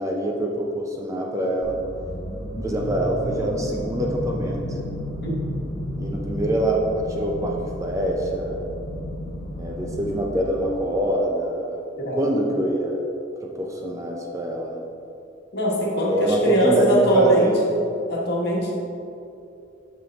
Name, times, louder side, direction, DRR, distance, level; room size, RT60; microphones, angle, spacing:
voice 1, 0.0-1.8 2.6-4.8 6.0-8.7 9.6-11.8 12.1-13.0 13.4-14.8 16.0-17.5, right 1 dB, 15° right, 0 dB, 0.5 m, -25 dB
sound 1, 1.6-10.7, equal, 35° left, 1.4 m, -32 dB
voice 2, 15.5-17.8 18.1-18.8, right 1 dB, 55° left, -3 dB, 1.4 m, -21 dB
7.3 x 5.9 x 3.5 m, 2.7 s
head